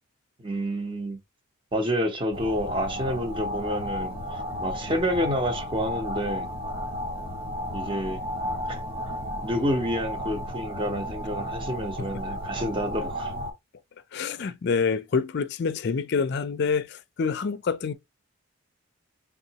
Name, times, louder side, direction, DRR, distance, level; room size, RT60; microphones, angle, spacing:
voice 1, 0.4-1.2 1.7-6.5 7.7-8.2 8.7-8.8 9.4-13.3, equal, 25° right, 0.7 m, -29 dB
sound 1, 2.3-13.5, equal, 50° right, 1.4 m, -33 dB
voice 2, 14.1-17.9, left 5 dB, 55° left, 0.4 m, -27 dB
3.7 x 3.6 x 2.8 m
head